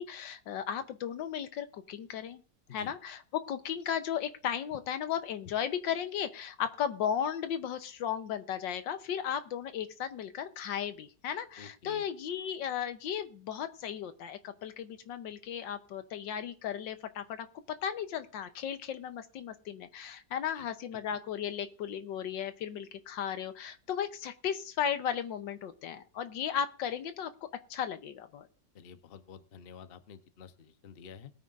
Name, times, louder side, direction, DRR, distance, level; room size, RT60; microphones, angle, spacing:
voice 1, 0.0-2.4 2.7-27.3 27.7-28.5, left 8 dB, 80° left, 10 dB, 1.6 m, -35 dB
voice 2, 11.6-12.0 20.5-20.7 20.9-21.0 28.7-31.3, left 7 dB, 45° left, 9 dB, 0.8 m, -50 dB
20.0 x 9.4 x 2.5 m, 0.35 s
omnidirectional pair, 2.0 m